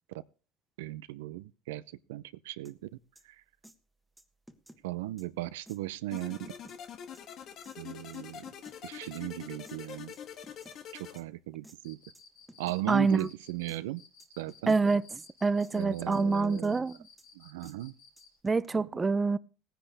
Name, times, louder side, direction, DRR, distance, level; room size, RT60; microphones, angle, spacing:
voice 1, 0.8-2.9 3.2-3.4 4.8-6.5 7.8-8.5 8.8-10.1 10.9-12.0 12.6-14.0 14.4-14.8 15.7-16.8 17.3-17.9 18.7-18.9, right 16 dB, 85° right, 0.5 m, -37 dB
sound 1, 2.7-2.8 3.2-3.3 3.6-3.8 4.2-4.8 5.2-5.3 5.7-5.8 6.2-6.8 7.1-7.2 7.6-7.8 8.1-8.8 9.1-9.2 9.6-9.8 10.1-10.8 11.2-11.3 11.6-11.8 12.2-12.3 12.5-12.8 13.2-13.3 13.7-13.8 14.2-14.8 15.2-15.3 15.6-15.8 16.1-16.8 17.2-17.3 17.6-17.8 18.2-18.7, right 1 dB, 5° right, 1.4 m, -55 dB
sound 2, 6.1-11.2, left 9 dB, 50° left, 1.5 m, -45 dB
Cricket, 11.8-18.4, left 5 dB, 85° left, 4.5 m, -57 dB
voice 2, 12.9-13.3 14.7-15.0 15.4-16.9 18.4-19.4, right 4 dB, 20° right, 0.5 m, -26 dB
17.5 x 10.5 x 3.5 m
supercardioid pair, 100°, 0 cm